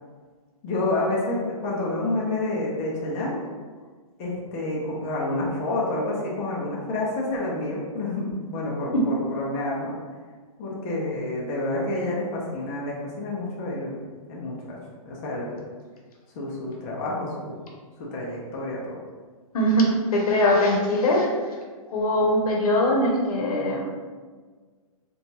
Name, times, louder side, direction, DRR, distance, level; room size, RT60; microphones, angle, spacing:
voice 1, 0.6-3.4 4.2-9.9 10.6-14.0 14.3-14.8 15.0-15.5 16.4-17.6 18.0-19.0, left 2 dB, 25° left, -4 dB, 0.4 m, -29 dB
voice 2, 19.5-21.3 21.9-23.9, left 1 dB, 80° left, -1 dB, 0.7 m, -21 dB
2.8 x 2.2 x 2.6 m, 1.5 s
hypercardioid pair, 160°, 19 cm